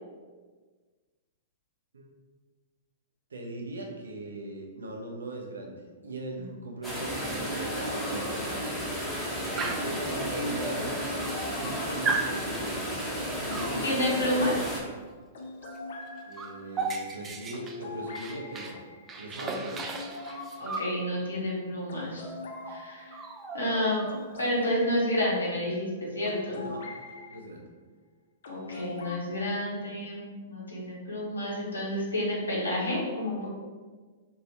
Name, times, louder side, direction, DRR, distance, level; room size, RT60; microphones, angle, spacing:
voice 1, 3.3-8.9 9.6-11.0 11.5-12.8 13.4-14.7 16.3-18.8 19.2-19.8 26.6-26.8 27.3-27.7, right 2 dB, 75° right, 1 dB, 0.6 m, -39 dB
sound 1, 6.8-14.8, equal, ahead, 0.9 m, -33 dB
Dog, 9.6-10.0 10.8-10.9 11.2-11.7 12.0-12.3 13.5-13.8 15.6-15.8 16.1-18.8 19.1-20.9 22.2-22.3 22.6-22.8 23.1-24.4, right 4 dB, 20° right, 0.3 m, -35 dB
sound 2, 11.0-27.3 28.4-29.2, left 2 dB, 65° left, 0.5 m, -43 dB
voice 2, 13.8-14.5 19.4-19.6 20.6-22.3 22.7-23.2 23.5-24.0 24.4-26.6 28.5-33.5, left 1 dB, 85° left, -5 dB, 1.0 m, -30 dB
3.0 x 2.7 x 2.8 m, 1.4 s
figure-of-eight pair, 110°, 0 cm